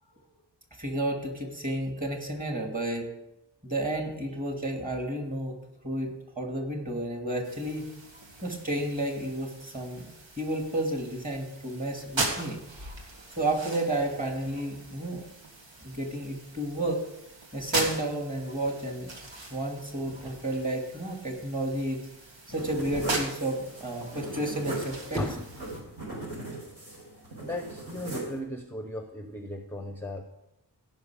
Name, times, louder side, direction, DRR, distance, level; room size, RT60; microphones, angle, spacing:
voice 1, 0.8-3.1 3.6-5.6 5.8-7.9 8.4-10.1 10.4-12.6 13.4-15.3 15.8-17.0 17.5-19.1 19.5-22.1 22.5-25.2, right 1 dB, 20° right, 2 dB, 2.5 m, -31 dB
sound 1, 7.4-25.8, right 2 dB, 85° right, 1.8 m, -39 dB
sound 2, 22.5-28.4, right 2 dB, 65° right, 5.1 m, -39 dB
voice 2, 27.4-30.3, left 1 dB, 5° left, 6 dB, 0.7 m, -35 dB
16.5 x 5.8 x 4.9 m, 0.88 s
wide cardioid pair, 100°, 44 cm